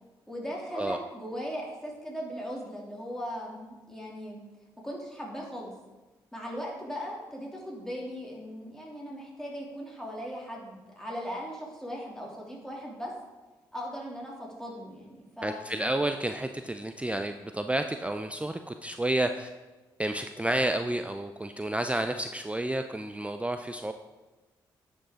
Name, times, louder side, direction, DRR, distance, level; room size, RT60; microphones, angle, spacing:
voice 1, 0.3-4.4 4.8-5.7 6.3-13.1 13.7-15.8, equal, 5° left, -3 dB, 2.9 m, -38 dB
voice 2, 15.4-19.5 20.0-23.9, right 1 dB, 10° right, 7 dB, 0.4 m, -30 dB
10.0 x 5.3 x 3.7 m, 1.2 s
hypercardioid pair, 40°, 10 cm